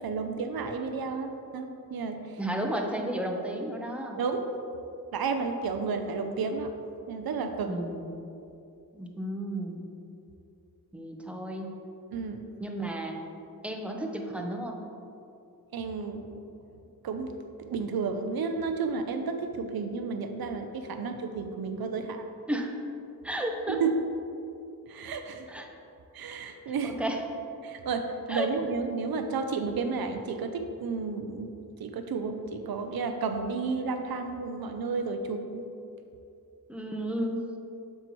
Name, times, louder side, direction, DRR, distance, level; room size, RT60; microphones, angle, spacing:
voice 1, 0.0-2.4 4.2-4.4 5.1-6.7 7.1-7.7 12.1-12.4 15.7-16.4 17.0-22.2 23.7-23.9 24.9-25.5 26.1-27.0 27.6-31.5 31.8-35.6, right 4 dB, 75° right, 6 dB, 0.6 m, -32 dB
voice 2, 2.4-4.2 7.6-8.1 8.9-9.8 10.9-11.7 12.6-13.2 13.6-14.8 22.5-22.8 23.2-23.8 25.5-25.7 26.8-27.2 28.3-28.5 36.7-37.4, right 1 dB, 5° right, 2 dB, 0.8 m, -33 dB
7.5 x 5.6 x 3.1 m, 2.7 s
cardioid pair, 55°, 37 cm